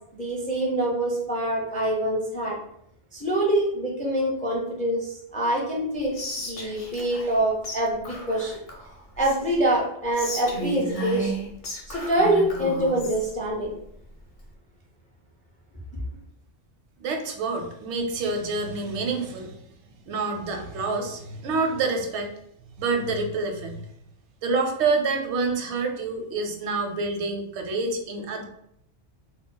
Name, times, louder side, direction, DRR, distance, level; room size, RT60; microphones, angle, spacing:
voice 1, 0.1-2.6 3.1-8.6 9.2-11.4 11.9-13.7, right 1 dB, 10° left, -3 dB, 0.3 m, -25 dB
Whispering, 6.1-7.4 7.6-7.8 8.0-9.6 10.1-13.3, right 1 dB, 50° left, 0.8 m, -33 dB
voice 2, 17.0-19.6 20.1-22.3 22.8-23.9 24.4-28.4, right 3 dB, 85° right, 3 dB, 0.9 m, -27 dB
2.3 x 2.1 x 3.7 m, 0.73 s
omnidirectional pair, 1.1 m